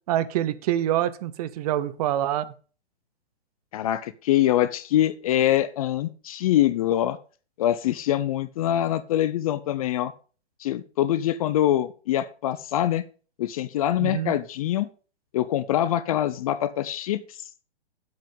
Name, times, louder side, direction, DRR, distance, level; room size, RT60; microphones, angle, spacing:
voice 1, 0.1-2.5 14.0-14.4, right 12 dB, 35° right, 15 dB, 0.7 m, -26 dB
voice 2, 3.7-7.2 7.6-10.1 10.6-13.0 13.4-14.9 15.3-17.4, left 12 dB, 35° left, 14 dB, 0.5 m, -24 dB
7.8 x 7.6 x 5.3 m, 0.38 s
hypercardioid pair, 145°, 33 cm